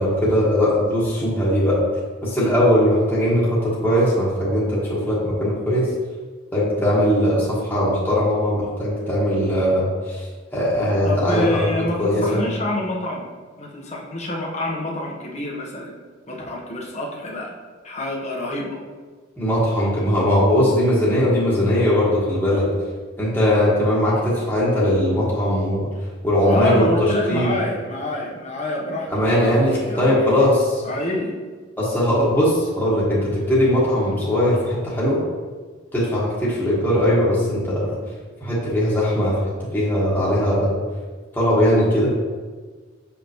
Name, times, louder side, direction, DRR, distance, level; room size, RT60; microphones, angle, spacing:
voice 1, 0.0-1.8 2.2-5.9 6.5-10.3 10.5-12.4 19.4-22.7 23.2-25.9 26.2-27.6 29.1-30.8 31.8-35.2 35.9-38.0 38.4-39.4 39.7-40.8 41.3-42.1, equal, 10° left, -8 dB, 1.5 m, -20 dB
voice 2, 11.0-13.3 13.6-15.9 16.3-17.5 17.8-18.8 24.0-24.3 26.5-29.6 29.8-30.5 30.8-31.3, left 1 dB, 35° left, -2 dB, 1.1 m, -27 dB
6.9 x 5.3 x 3.0 m, 1.4 s
head